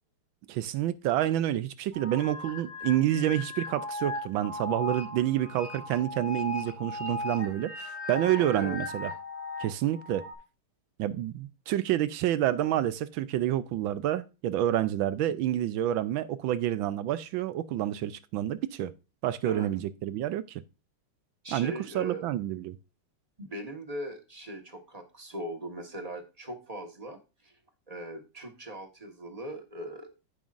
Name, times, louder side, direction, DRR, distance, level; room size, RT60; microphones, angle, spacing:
voice 1, 0.5-9.1 9.6-10.2 11.0-18.9 19.2-20.6 21.5-22.8, right 12 dB, 75° right, 1.3 m, -28 dB
sound 1, 1.9-10.3, left 2 dB, 75° left, 5.0 m, -37 dB
voice 2, 8.3-8.8 19.4-19.7 21.4-22.3 23.4-27.5 27.9-30.1, right 1 dB, 20° right, 1.1 m, -39 dB
15.0 x 5.5 x 2.5 m
omnidirectional pair, 2.4 m